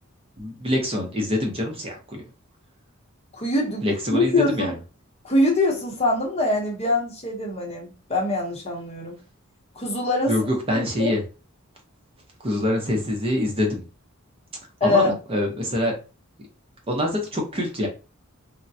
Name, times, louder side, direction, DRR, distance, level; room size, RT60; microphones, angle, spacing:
voice 1, 0.4-2.2 3.8-4.8 10.3-11.2 12.4-13.8 14.8-15.9 16.9-17.9, left 1 dB, 25° right, 1 dB, 0.7 m, -25 dB
voice 2, 3.3-4.7 5.2-9.2 9.7-10.3 10.7-11.1 14.8-15.1, left 2 dB, 30° left, -1 dB, 0.8 m, -23 dB
3.6 x 2.1 x 2.7 m, 0.32 s
head